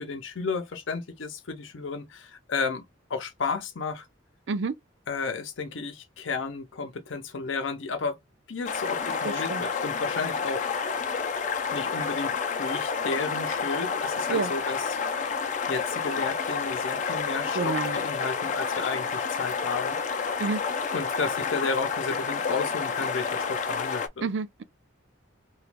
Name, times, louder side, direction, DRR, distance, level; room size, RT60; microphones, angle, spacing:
voice 1, 0.0-2.8 3.1-4.0 5.1-8.2 8.5-10.6 11.7-12.3 12.6-15.0 15.7-20.0 20.9-24.3, left 4 dB, 75° left, 0.7 m, -32 dB
sound 1, 8.7-24.1, left 5 dB, 40° left, 0.4 m, -29 dB
voice 2, 9.2-9.6 14.3-14.5 17.6-17.9 20.4-20.6 24.2-24.6, right 4 dB, 65° right, 0.4 m, -29 dB
2.9 x 2.3 x 3.3 m
head